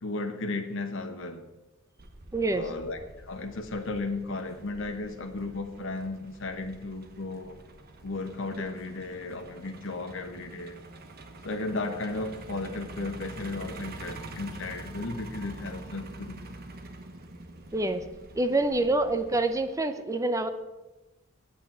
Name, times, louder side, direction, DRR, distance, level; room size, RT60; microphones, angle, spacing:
voice 1, 0.0-1.4 2.5-7.6 8.0-10.8 11.4-16.5, left 3 dB, 65° left, 1.1 m, -35 dB
Truck, 2.0-19.8, right 2 dB, 50° right, 1.1 m, -46 dB
voice 2, 2.3-2.7 17.7-18.0 18.4-20.5, right 2 dB, 15° right, 0.8 m, -26 dB
8.8 x 8.3 x 7.3 m
head